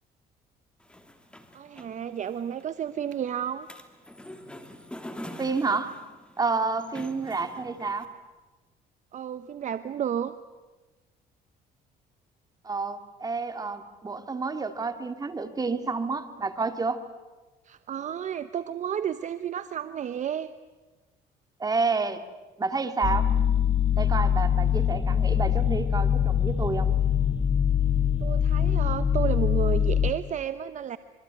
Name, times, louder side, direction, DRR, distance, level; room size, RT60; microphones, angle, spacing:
sound 1, 0.8-8.1, left 1 dB, 5° left, 2.7 m, -45 dB
voice 1, 1.5-3.7 9.1-10.3 17.6-20.5 28.2-31.0, right 9 dB, 45° right, 12 dB, 0.9 m, -32 dB
voice 2, 5.4-5.9 6.4-8.1 12.6-17.0 21.6-22.2 22.6-23.3 24.0-26.9, right 4 dB, 20° right, 7 dB, 2.4 m, -29 dB
sound 2, 23.0-30.1, left 8 dB, 30° left, 1.4 m, -23 dB
26.0 x 23.5 x 9.3 m, 1.2 s
cardioid pair, 110°, 17 cm